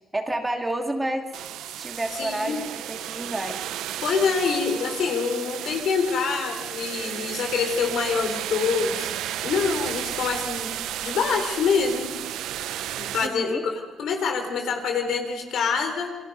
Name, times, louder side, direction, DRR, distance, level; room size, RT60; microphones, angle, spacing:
voice 1, 0.1-1.3 1.7-3.6 13.2-13.6, right 1 dB, 15° right, 4 dB, 2.7 m, -29 dB
sound 1, 1.3-13.3, right 12 dB, 85° right, 0.7 m, -33 dB
voice 2, 2.2-2.6 4.0-9.1 9.4-10.7 11.0-12.2 13.0-16.1, left 5 dB, 75° left, 4 dB, 4.0 m, -25 dB
28.0 x 22.5 x 5.5 m, 1.2 s
cardioid pair, 90°, 0 cm